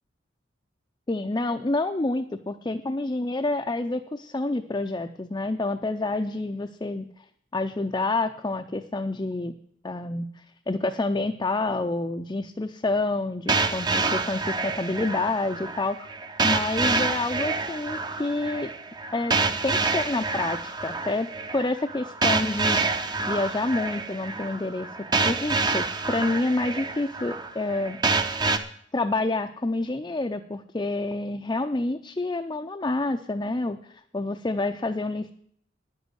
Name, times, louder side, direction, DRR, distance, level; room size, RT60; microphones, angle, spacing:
voice 1, 1.1-7.1 7.5-9.5 9.8-16.1 16.4-18.7 19.1-19.3 19.6-22.8 23.3-24.9 25.2-28.0 28.9-35.3, left 2 dB, 20° left, 4 dB, 0.5 m, -28 dB
sound 1, 13.5-28.6, right 3 dB, 20° right, 0.7 m, -27 dB
10.0 x 8.1 x 7.9 m, 0.66 s
head